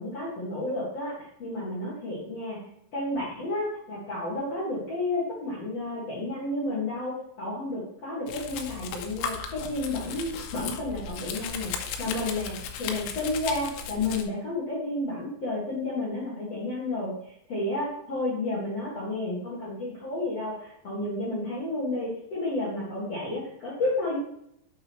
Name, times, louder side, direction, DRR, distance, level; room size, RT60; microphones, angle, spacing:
voice 1, 0.0-2.6 2.9-11.7 12.0-17.1 17.5-24.2, left 2 dB, 70° left, -8 dB, 1.5 m, -31 dB
Domestic sounds home sounds, 8.3-14.2, left 7 dB, 85° left, 3.3 m, -36 dB
7.5 x 6.1 x 3.1 m, 0.72 s
omnidirectional pair, 6.0 m